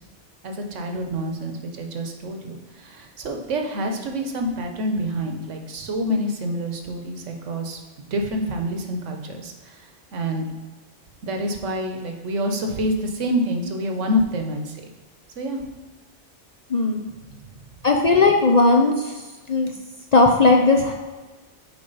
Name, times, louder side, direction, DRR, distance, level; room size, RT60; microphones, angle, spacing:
voice 1, 0.4-7.8 8.1-10.4 11.2-14.8 15.4-15.6, equal, 80° right, 4 dB, 1.2 m, -27 dB
voice 2, 16.7-17.0 17.8-19.1 19.5-19.7 20.1-20.9, left 3 dB, 50° left, 1 dB, 0.5 m, -17 dB
7.2 x 4.8 x 4.0 m, 1.2 s
omnidirectional pair, 1.2 m